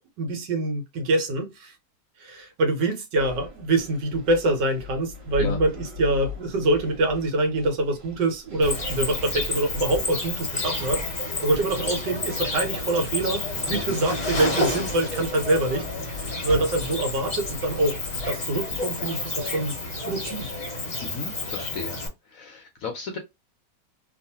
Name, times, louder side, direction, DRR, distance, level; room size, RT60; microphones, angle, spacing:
voice 1, 0.0-1.7 2.2-18.0 18.3-19.7 20.0-20.5, right 2 dB, 75° right, 1.5 m, -25 dB
sound 1, 3.2-19.6, left 3 dB, 50° right, 1.5 m, -40 dB
Cricket, 8.6-22.1, left 2 dB, 35° left, 0.7 m, -30 dB
voice 2, 21.0-23.2, left 4 dB, 70° left, 0.8 m, -35 dB
3.0 x 2.4 x 2.7 m
omnidirectional pair, 1.9 m